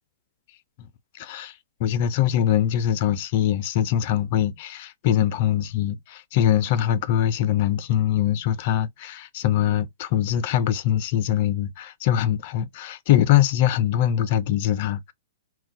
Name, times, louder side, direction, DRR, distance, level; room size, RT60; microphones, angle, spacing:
voice 1, 1.1-15.1, left 11 dB, 50° left, 0.4 m, -23 dB
2.2 x 2.2 x 3.8 m
hypercardioid pair, 120°, 0 cm